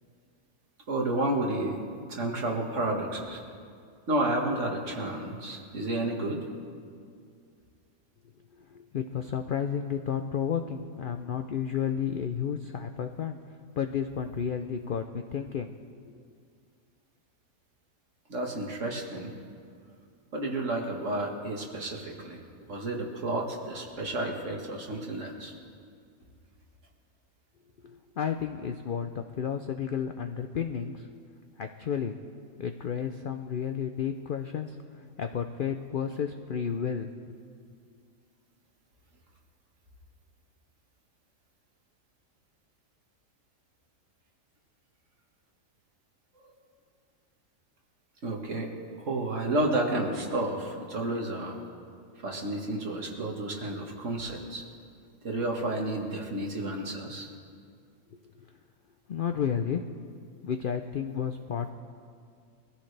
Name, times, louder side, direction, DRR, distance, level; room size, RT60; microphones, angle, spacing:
voice 1, 0.9-1.8 2.1-3.4 4.1-6.4 18.3-19.3 20.3-22.4 22.7-25.5 46.4-46.5 48.2-48.7 49.0-51.6 52.2-54.6 55.2-57.3, right 2 dB, 60° right, 0 dB, 1.9 m, -31 dB
voice 2, 8.7-13.4 13.8-15.7 16.1-16.2 27.8-31.1 31.6-32.1 32.6-34.8 35.2-37.3 59.1-59.8 60.4-61.7, left 7 dB, 65° left, 7 dB, 0.5 m, -32 dB
23.0 x 14.0 x 3.3 m, 2.3 s
omnidirectional pair, 1.5 m